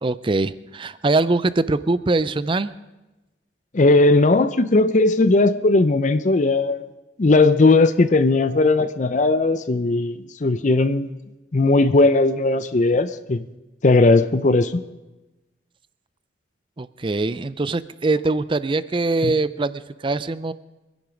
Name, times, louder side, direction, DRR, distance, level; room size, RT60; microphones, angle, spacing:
voice 1, 0.0-2.7 16.8-20.5, right 3 dB, 25° right, 16 dB, 0.5 m, -22 dB
voice 2, 3.7-6.8 7.2-11.1 11.5-13.4 13.8-14.8 19.2-19.3, left 2 dB, 40° left, 12 dB, 0.5 m, -17 dB
24.0 x 10.5 x 5.1 m, 1.1 s
head